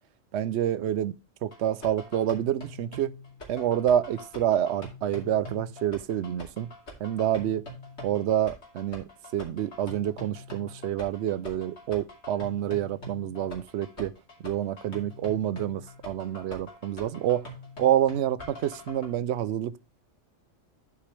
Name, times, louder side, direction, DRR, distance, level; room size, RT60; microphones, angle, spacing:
voice 1, 0.3-1.1 1.4-3.1 3.5-6.7 7.0-7.6 8.0-9.0 9.3-14.1 14.4-15.8 16.1-17.4 17.8-19.8, right 11 dB, 70° right, 0.8 m, -27 dB
sound 1, 1.5-19.1, left 1 dB, 65° left, 2.8 m, -44 dB
11.5 x 5.0 x 3.2 m
omnidirectional pair, 1.3 m